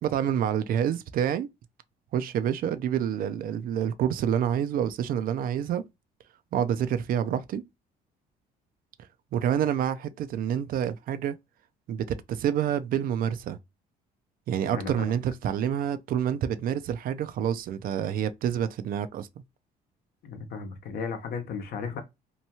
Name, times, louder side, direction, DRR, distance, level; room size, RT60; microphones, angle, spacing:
voice 1, 0.0-1.5 2.1-5.8 6.5-7.6 9.3-11.4 11.9-13.6 14.5-19.3, right 9 dB, 60° right, 0.4 m, -28 dB
voice 2, 14.7-15.1 20.2-22.0, left 5 dB, 65° left, 0.8 m, -35 dB
2.8 x 2.2 x 2.8 m
cardioid pair, 110°, 17 cm